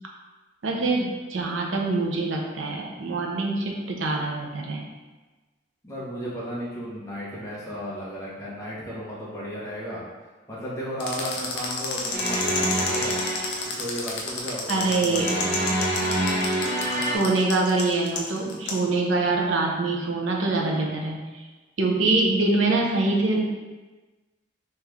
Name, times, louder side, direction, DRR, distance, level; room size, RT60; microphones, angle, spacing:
voice 1, 0.6-4.9 14.7-15.3 17.1-21.4 21.8-23.4, right 3 dB, 85° right, 0 dB, 0.6 m, -24 dB
voice 2, 5.8-10.0 10.5-13.2 13.8-15.7, equal, 15° left, -7 dB, 0.9 m, -34 dB
sound 1, 11.0-18.8, left 4 dB, 65° left, 0.6 m, -30 dB
sound 2, 12.1-13.8 15.1-17.2, right 1 dB, 40° right, 0.8 m, -26 dB
3.2 x 3.1 x 3.5 m, 1.2 s
head